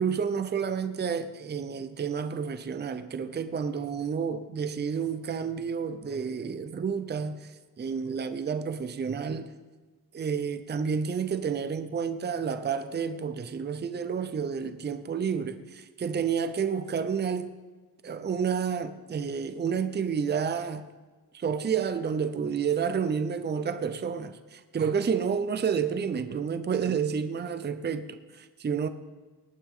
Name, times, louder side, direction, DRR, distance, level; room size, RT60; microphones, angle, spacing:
voice 1, 0.0-7.5 7.8-9.5 10.1-17.5 18.0-20.9 21.3-28.9, right 6 dB, 25° right, 0.6 m, -30 dB
18.5 x 9.3 x 3.7 m
cardioid pair, 130°, 42 cm